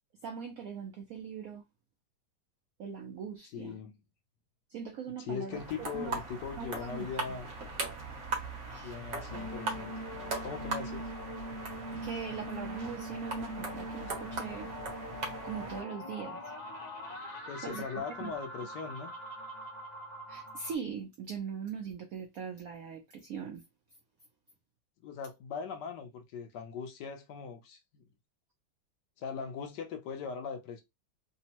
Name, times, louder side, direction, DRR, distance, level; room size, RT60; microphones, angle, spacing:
voice 1, 0.2-1.6 2.8-3.8 4.7-6.2 6.6-7.4 8.6-9.0 12.0-14.7 15.4-16.4 17.6-18.3 20.3-23.6, right 6 dB, 80° right, 0.8 m, -41 dB
voice 2, 3.5-4.0 5.2-7.5 8.7-9.9 10.4-11.1 17.5-19.1 25.0-28.0 29.2-30.8, left 6 dB, 70° left, 1.1 m, -40 dB
sound 1, 5.5-15.8, right 3 dB, 50° right, 1.0 m, -40 dB
sound 2, 9.3-20.8, equal, 45° left, 0.5 m, -42 dB
3.4 x 2.0 x 2.8 m
omnidirectional pair, 2.1 m